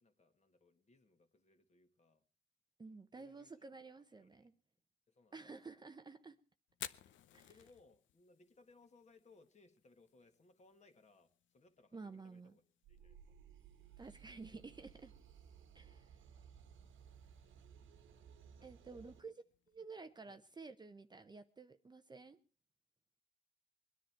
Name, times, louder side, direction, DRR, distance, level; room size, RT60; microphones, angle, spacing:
voice 1, 0.0-2.2 3.1-3.5 4.2-4.3 5.1-5.5 7.4-12.6 12.9-13.2 14.5-14.7 17.4-17.5 18.1-19.2 20.3-20.4, left 3 dB, 35° left, 6 dB, 1.9 m, -67 dB
voice 2, 2.8-4.6 5.3-6.4 7.3-7.5 11.9-12.6 14.0-15.1 15.7-16.2 18.6-19.3 19.7-22.4, right 4 dB, 20° right, 9 dB, 0.7 m, -52 dB
Fire, 6.7-20.6, left 11 dB, 70° left, 0.8 m, -59 dB
sound 1, 12.8-19.2, right 7 dB, 80° right, 1.4 m, -59 dB
22.0 x 10.5 x 4.5 m, 0.37 s
cardioid pair, 90°, 20 cm